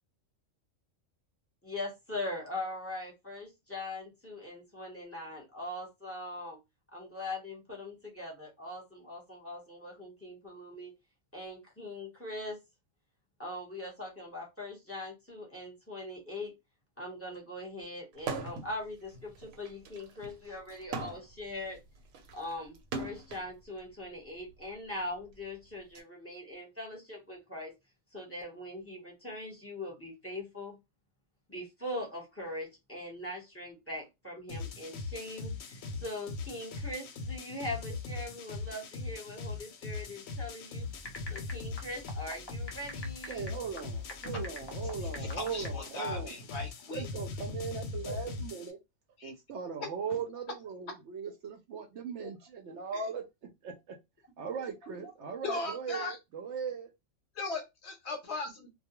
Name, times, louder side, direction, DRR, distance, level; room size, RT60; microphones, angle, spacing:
voice 1, 1.6-6.6 6.9-10.9 11.3-12.6 13.4-16.5 17.0-21.8 22.3-27.7 28.1-30.8 31.5-40.9 41.3-43.5, left 1 dB, 10° left, 0.8 m, -41 dB
sound 1, 18.2-18.7 19.1-23.5 24.4-26.0, right 4 dB, 90° right, 1.0 m, -40 dB
sound 2, 34.5-48.7, left 4 dB, 85° left, 1.0 m, -40 dB
sound 3, 40.8-45.7, left 1 dB, 40° left, 0.4 m, -47 dB
voice 2, 43.3-46.4 46.9-48.8 49.2-54.0 54.4-56.9, right 6 dB, 65° right, 0.8 m, -39 dB
voice 3, 45.0-47.1 48.1-48.2 49.2-49.3 52.2-52.3 52.9-53.0 55.4-56.2 57.4-58.7, left 3 dB, 65° left, 0.8 m, -38 dB
2.2 x 2.2 x 2.9 m
omnidirectional pair, 1.4 m